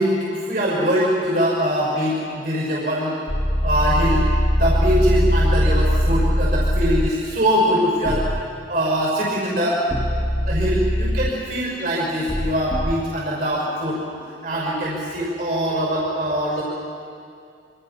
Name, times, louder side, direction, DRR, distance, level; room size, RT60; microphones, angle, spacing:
voice 1, 0.0-3.1 3.6-4.2 4.6-8.2 8.7-9.8 10.5-14.0 14.4-16.6, equal, 55° right, -4 dB, 6.0 m, -22 dB
sound 1, 3.3-7.1 8.0-8.4 9.9-11.3 12.3-12.9, equal, 15° left, 1.5 m, -20 dB
26.5 x 26.0 x 6.0 m, 2.4 s
head